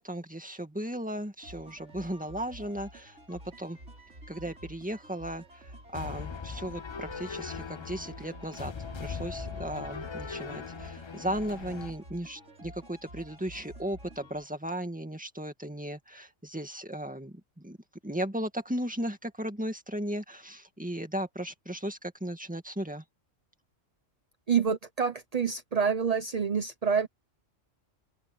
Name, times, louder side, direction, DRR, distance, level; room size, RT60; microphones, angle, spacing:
voice 1, 0.0-3.8 4.3-8.7 9.0-17.8 18.0-23.0, right 1 dB, 5° right, 2.0 m, -36 dB
sound 1, 1.4-14.4, right 1 dB, 65° right, 6.9 m, -49 dB
sound 2, 5.9-11.9, left 5 dB, 45° left, 0.3 m, -40 dB
Slam, 8.4-8.8 9.7-9.9 11.2-12.5, left 3 dB, 75° left, 2.7 m, -54 dB
voice 2, 24.5-27.1, right 6 dB, 35° right, 0.9 m, -27 dB
omnidirectional pair, 1.3 m